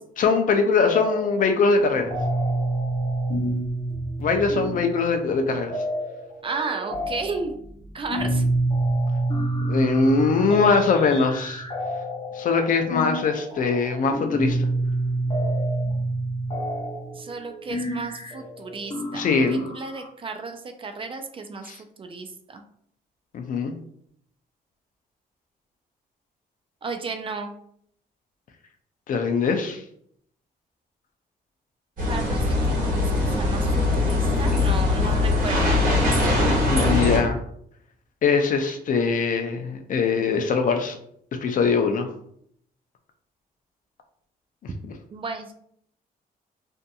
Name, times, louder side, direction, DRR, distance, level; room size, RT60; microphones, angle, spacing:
voice 1, 0.2-2.1 4.2-5.7 9.7-11.6 12.4-14.7 19.1-19.7 21.6-21.8 23.3-23.7 29.1-29.8 36.7-37.4 38.2-41.0 41.4-42.1 44.8-44.9, left 4 dB, 55° left, 5 dB, 0.4 m, -22 dB
sound 1, 0.9-1.5 1.8-20.1, right 1 dB, 35° left, 0.8 m, -28 dB
voice 2, 6.4-7.5 7.9-8.4 17.2-22.6 26.8-27.6 32.1-35.8 45.1-45.5, right 4 dB, 35° right, 6 dB, 0.3 m, -33 dB
sound 2, 32.0-37.2, left 2 dB, 55° right, 1.2 m, -21 dB
2.6 x 2.6 x 2.3 m, 0.67 s
cardioid pair, 90°, 16 cm